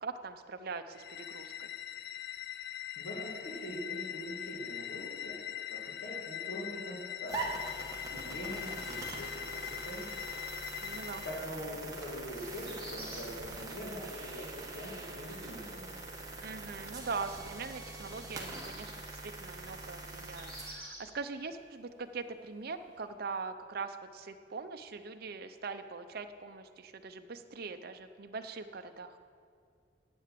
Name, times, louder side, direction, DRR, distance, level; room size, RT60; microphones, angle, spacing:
voice 1, 0.0-1.7 10.8-11.2 16.4-29.2, right 4 dB, 55° right, 7 dB, 0.6 m, -42 dB
sound 1, 0.9-11.5, left 11 dB, 55° left, 0.4 m, -42 dB
voice 2, 3.0-5.4 5.7-7.6 8.1-10.1 11.2-14.5 14.7-15.9, equal, 85° left, -5 dB, 2.2 m, -43 dB
sound 2, 7.3-20.7, right 2 dB, 20° right, 1.4 m, -43 dB
sound 3, 12.3-23.0, equal, 5° left, 3.2 m, -54 dB
9.9 x 8.7 x 7.6 m, 2.2 s
head